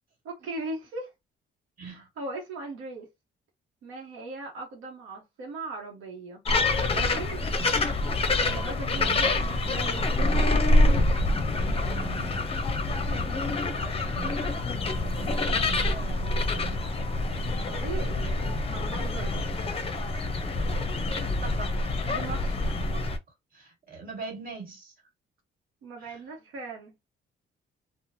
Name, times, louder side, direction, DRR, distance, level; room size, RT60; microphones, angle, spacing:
voice 1, 0.2-1.1 1.8-3.1 3.8-6.4 6.9-7.4 8.4-10.0 12.8-13.4 13.7-13.9 17.6-19.3 22.1-22.8 25.8-26.9, right 3 dB, 90° right, 0.8 m, -39 dB
sound 1, 6.4-23.2, left 2 dB, 30° left, 0.6 m, -26 dB
voice 2, 8.9-9.3 10.9-12.4 13.4-14.4 15.0-16.9 21.0-21.8 22.8-23.1 23.5-24.9 26.0-26.2, right 4 dB, 45° right, 1.6 m, -42 dB
2.9 x 2.0 x 2.6 m
cardioid pair, 90°, 20 cm